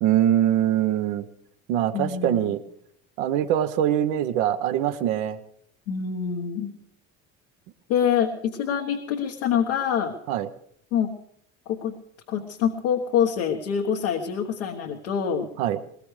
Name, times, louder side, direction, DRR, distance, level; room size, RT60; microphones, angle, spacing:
voice 1, 0.0-1.2 1.7-2.6 3.2-5.4 10.3-10.5 15.6-15.8, right 11 dB, 80° right, 8 dB, 1.1 m, -23 dB
voice 2, 1.9-2.5 5.9-6.7 7.9-10.1 10.9-11.1 11.7-12.0 12.3-15.5, left 8 dB, 85° left, -1 dB, 1.4 m, -25 dB
21.0 x 19.5 x 3.3 m, 0.68 s
hypercardioid pair, 70°, 41 cm